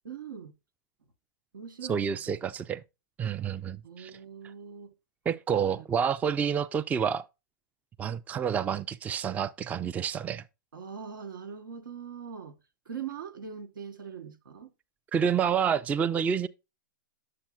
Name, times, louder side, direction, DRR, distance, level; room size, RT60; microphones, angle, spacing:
voice 1, 0.0-0.5 1.5-2.5 3.8-4.9 5.5-5.8 10.7-12.6 12.8-14.7, right 7 dB, 80° right, 1.1 m, -42 dB
voice 2, 1.9-2.8 3.2-4.2 5.3-7.3 8.0-10.4 15.1-16.5, right 7 dB, 15° right, 0.3 m, -28 dB
8.7 x 7.4 x 2.3 m
hypercardioid pair, 115°, 11 cm